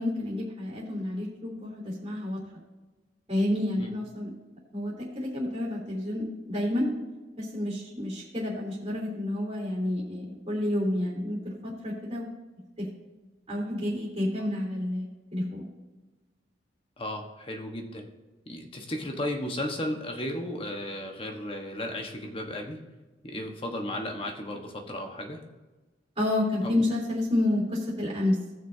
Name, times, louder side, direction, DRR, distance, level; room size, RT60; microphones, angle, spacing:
voice 1, 0.0-2.4 3.3-4.3 4.7-6.9 7.4-12.3 12.8-12.9 13.5-15.6 26.2-28.4, left 1 dB, 30° right, -6 dB, 3.5 m, -29 dB
voice 2, 17.0-18.1 18.5-22.8 23.2-25.4 26.6-26.9, left 1 dB, 30° left, 2 dB, 1.3 m, -34 dB
18.5 x 6.3 x 2.8 m, 1.2 s
head